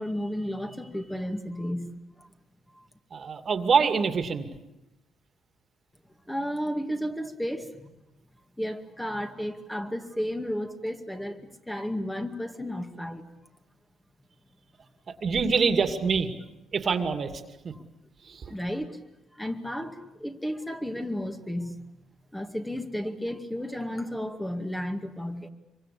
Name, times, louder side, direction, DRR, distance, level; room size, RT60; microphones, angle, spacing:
voice 1, 0.0-1.9 2.2-2.3 2.7-2.8 6.3-7.9 8.6-13.3 17.7-17.8 18.5-19.0 19.3-21.8 22.3-25.5, equal, 5° left, 5 dB, 2.3 m, -33 dB
voice 2, 3.1-4.5 15.2-16.3 16.7-17.3 17.6-17.7 18.3-18.4, right 5 dB, 45° right, 8 dB, 2.4 m, -25 dB
25.0 x 24.5 x 8.6 m, 0.93 s
cardioid pair, 90°, 0 cm